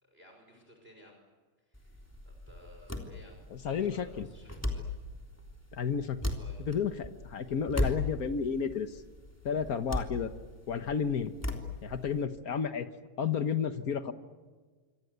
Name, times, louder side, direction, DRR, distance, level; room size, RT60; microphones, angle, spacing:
voice 1, 0.0-1.2 1.6-4.9 6.4-6.6, left 1 dB, 20° right, 2 dB, 5.6 m, -57 dB
sound 1, 1.7-12.2, left 1 dB, 5° left, 3.1 m, -38 dB
voice 2, 3.5-4.3 5.7-6.4 6.7-9.0 9.4-10.3 10.7-11.3 11.8-12.9 13.2-14.1, left 7 dB, 60° left, 9 dB, 0.9 m, -32 dB
27.0 x 26.0 x 8.1 m, 1.4 s
omnidirectional pair, 3.4 m